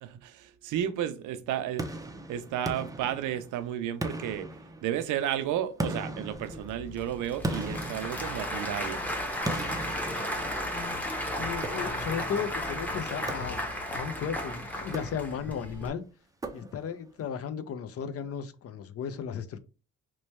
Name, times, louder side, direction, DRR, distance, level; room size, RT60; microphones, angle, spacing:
voice 1, 0.0-2.0 2.3-4.5 4.8-9.0, right 10 dB, 80° right, 0.5 m, -32 dB
sound 1, 1.8-3.6 4.0-5.2 5.8-8.8 9.4-10.9 11.6-12.3 13.3-14.0 14.8-15.6 16.4-17.1, right 1 dB, 10° right, 0.4 m, -38 dB
Applause / Crowd, 6.3-15.9, left 1 dB, 5° left, 0.8 m, -34 dB
voice 2, 11.4-13.6 13.9-16.0 16.5-19.6, left 7 dB, 50° left, 0.5 m, -35 dB
3.1 x 2.2 x 4.1 m
cardioid pair, 90°, 30 cm